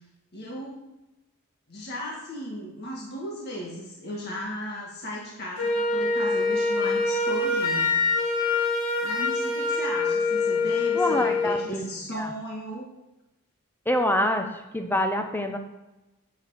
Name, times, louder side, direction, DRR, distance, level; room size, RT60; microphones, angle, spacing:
voice 1, 0.3-0.8 1.7-8.0 9.0-12.9, equal, 50° left, -3 dB, 1.7 m, -36 dB
Wind instrument woodwind instrument, 5.6-11.7, left 3 dB, 90° left, 2.0 m, -25 dB
voice 2, 10.9-11.8 12.2-12.3 13.9-15.6, left 1 dB, 10° left, 5 dB, 0.8 m, -26 dB
8.0 x 5.5 x 6.6 m, 0.99 s
head